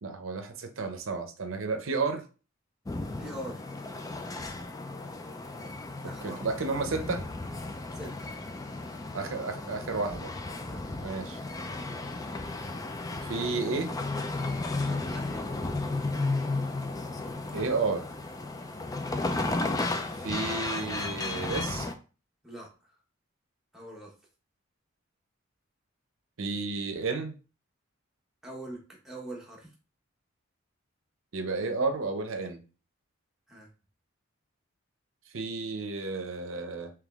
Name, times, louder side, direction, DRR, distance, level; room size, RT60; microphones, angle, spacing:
voice 1, 0.0-2.2 6.2-7.2 9.1-10.3 11.0-11.4 13.2-13.9 17.5-18.0 20.2-21.9 26.4-27.3 31.3-32.6 35.3-36.9, right 4 dB, 75° right, 6 dB, 0.6 m, -32 dB
sound 1, 2.9-21.9, left 2 dB, 15° left, 0.3 m, -34 dB
voice 2, 3.2-3.6 6.0-6.4 7.9-8.4 10.6-10.8 14.9-15.5 22.4-22.7 23.7-24.1 28.4-28.8 29.0-29.7 33.5-33.7, right 1 dB, ahead, -3 dB, 1.0 m, -42 dB
3.5 x 3.0 x 3.5 m, 0.34 s
head